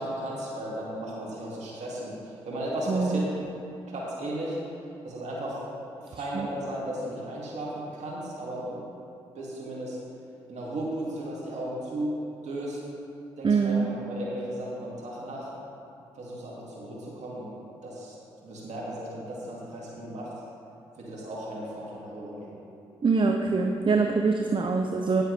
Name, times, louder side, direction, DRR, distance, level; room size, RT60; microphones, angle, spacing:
voice 1, 0.0-3.2 3.9-4.6 5.0-8.8 9.3-10.0 10.5-12.1 12.4-12.8 13.4-15.5 16.1-17.5 17.8-18.2 18.4-20.3 21.0-22.6, right 1 dB, 65° right, -5 dB, 2.4 m, -35 dB
voice 2, 2.9-3.2 6.1-6.5 13.4-13.9 23.0-25.2, right 4 dB, 40° right, 3 dB, 0.7 m, -24 dB
10.0 x 9.1 x 3.4 m, 2.8 s
hypercardioid pair, 45°, 13 cm